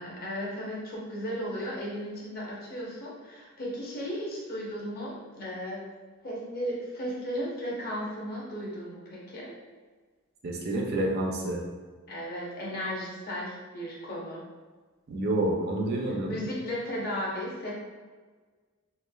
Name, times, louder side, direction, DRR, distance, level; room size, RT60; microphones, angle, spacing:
voice 1, 0.0-5.8 6.2-9.5 12.1-14.4 16.1-17.7, equal, 45° left, -5 dB, 0.8 m, -35 dB
voice 2, 10.4-11.6 15.1-16.3, right 1 dB, 50° right, -1 dB, 0.4 m, -28 dB
3.2 x 2.4 x 2.2 m, 1.4 s
head